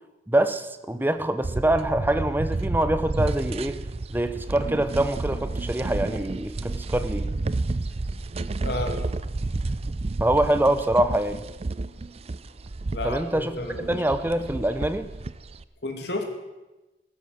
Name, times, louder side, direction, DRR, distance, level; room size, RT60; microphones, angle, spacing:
voice 1, 0.3-3.8 4.1-7.3 10.2-11.4 13.0-13.6 13.9-15.1, right 1 dB, 10° right, 10 dB, 0.9 m, -24 dB
sound 1, 1.4-15.6, right 2 dB, 35° right, 0.5 m, -31 dB
voice 2, 8.6-9.0 12.9-14.0 15.8-16.2, left 2 dB, 70° left, 4 dB, 2.6 m, -31 dB
15.5 x 13.0 x 6.6 m, 1.1 s
head